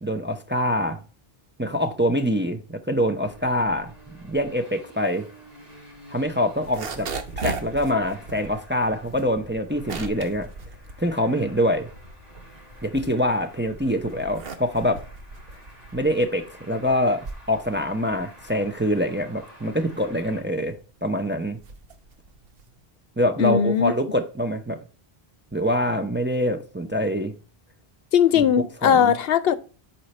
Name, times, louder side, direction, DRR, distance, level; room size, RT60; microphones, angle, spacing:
voice 1, 0.0-1.0 1.6-5.3 6.1-7.1 7.4-10.5 11.0-11.9 12.8-15.0 15.9-21.6 23.2-24.8 25.5-27.3 28.8-29.1, equal, 15° right, 0.6 m, -25 dB
Traffic noise roadway noise, 3.2-20.4, equal, 40° right, 2.5 m, -48 dB
sound 1, 6.5-11.8 12.1-13.6 14.1-22.8, right 4 dB, 65° right, 1.1 m, -38 dB
voice 2, 23.4-23.9 28.1-29.5, left 8 dB, 75° left, 0.8 m, -19 dB
8.3 x 4.5 x 4.2 m
omnidirectional pair, 1.0 m